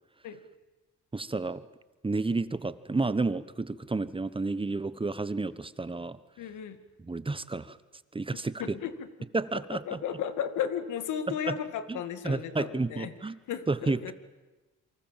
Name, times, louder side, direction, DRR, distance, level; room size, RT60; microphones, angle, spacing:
voice 1, 1.1-1.6 2.0-6.2 7.0-7.8 8.1-8.6 9.3-10.0 11.3-11.6 11.9-12.0 12.2-13.4 13.7-14.0, right 3 dB, 15° right, 15 dB, 1.1 m, -31 dB
voice 2, 6.4-6.8 8.6-8.9 9.7-13.1 13.5-14.1, left 8 dB, 80° left, 11 dB, 2.2 m, -34 dB
28.0 x 24.0 x 7.5 m, 1.2 s
cardioid pair, 90°, 30 cm